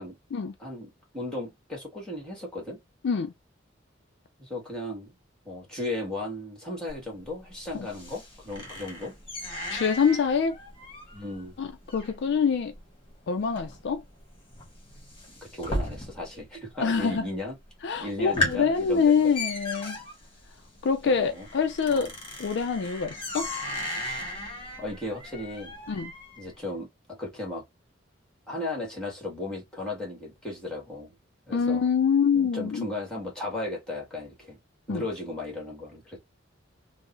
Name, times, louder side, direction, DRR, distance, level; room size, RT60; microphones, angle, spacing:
voice 1, 0.6-2.8 4.4-5.1 5.4-9.1 11.1-11.5 15.5-17.5 18.0-19.3 21.0-21.5 21.9-22.1 24.8-25.7 26.4-27.6 28.5-31.1 31.5-31.9 32.3-34.6 34.9-36.2, left 2 dB, 5° left, 1.6 m, -36 dB
sound 1, 6.9-16.5 16.7-17.3 17.7-17.8 18.1-26.5, left 1 dB, 30° left, 1.2 m, -36 dB
voice 2, 9.7-10.6 11.6-12.7 13.3-14.0 16.8-17.3 17.8-20.0 20.8-22.1 22.4-23.5 25.9-26.1 31.5-32.9 34.9-35.0, left 6 dB, 60° left, 0.4 m, -25 dB
3.7 x 2.1 x 2.5 m
head